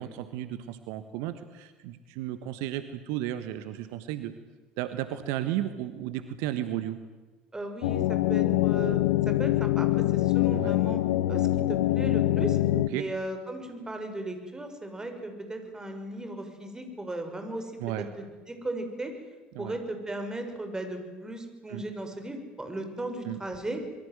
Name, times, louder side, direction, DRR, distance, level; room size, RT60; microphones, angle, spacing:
voice 1, 0.0-4.4 4.8-7.0 10.5-10.7 12.7-13.1 17.8-18.1 19.5-19.7 21.7-21.9 23.2-23.4, right 13 dB, 60° right, 11 dB, 1.4 m, -34 dB
voice 2, 7.5-9.0 9.3-11.0 11.3-12.6 12.9-17.7 18.2-19.1 19.6-23.8, right 1 dB, 15° right, 6 dB, 6.3 m, -36 dB
sound 1, 7.8-12.9, left 15 dB, 65° left, 0.9 m, -24 dB
26.0 x 22.5 x 9.5 m, 1.2 s
figure-of-eight pair, 65°, 5 cm